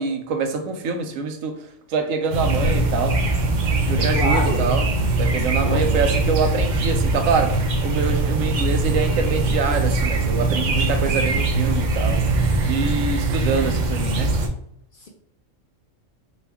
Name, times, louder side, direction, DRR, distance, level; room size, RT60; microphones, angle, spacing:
voice 1, 0.0-3.2 3.8-4.8 5.2-12.2 12.7-14.3, right 4 dB, 85° right, 6 dB, 1.0 m, -25 dB
sound 1, 2.3-14.5, right 2 dB, 55° right, 0.5 m, -21 dB
voice 2, 4.0-4.7 5.6-5.9, left 2 dB, 55° left, 1 dB, 0.7 m, -27 dB
5.1 x 2.3 x 3.4 m, 0.68 s
omnidirectional pair, 1.3 m